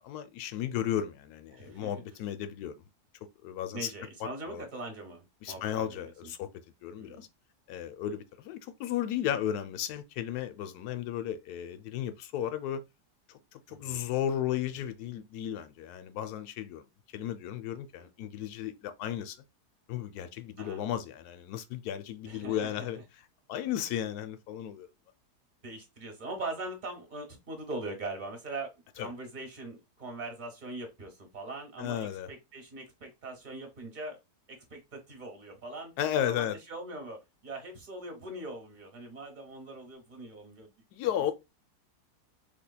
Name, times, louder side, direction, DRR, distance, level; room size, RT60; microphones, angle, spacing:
voice 1, 0.0-2.7 3.4-3.9 4.2-4.6 5.4-6.5 6.8-7.3 7.7-12.8 13.5-16.8 17.1-19.4 19.9-23.0 23.5-24.9 29.0-29.1 31.8-32.3 36.0-36.6 40.9-41.3, left 10 dB, 75° left, 1.1 m, -34 dB
voice 2, 1.5-2.0 3.7-6.3 7.0-7.2 13.7-14.0 18.0-18.1 20.6-20.8 22.2-22.7 23.5-23.6 25.6-34.2 34.5-40.7, right 2 dB, 35° right, 1.0 m, -42 dB
4.3 x 3.0 x 2.2 m
omnidirectional pair, 1.7 m